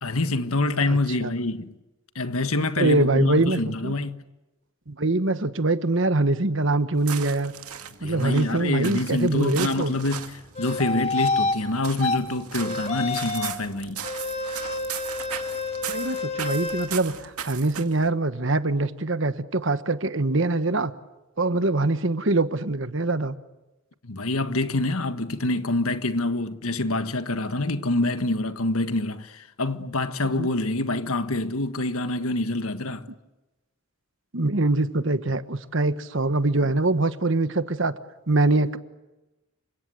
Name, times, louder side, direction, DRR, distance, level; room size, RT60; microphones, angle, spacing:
voice 1, 0.0-1.7 2.1-4.2 8.0-14.2 24.0-33.1, left 2 dB, 75° left, 1.6 m, -26 dB
voice 2, 0.9-1.3 2.8-3.9 4.9-7.5 8.0-9.9 15.9-20.9 21.4-23.4 30.4-30.5 34.3-37.9 38.3-38.8, right 2 dB, 55° right, 1.3 m, -23 dB
sound 1, 6.9-18.1, right 9 dB, 90° right, 2.3 m, -38 dB
sound 2, 10.5-11.6 12.0-12.2 12.6-13.6 14.0-16.9, left 3 dB, 30° left, 2.3 m, -28 dB
29.0 x 25.5 x 7.9 m
head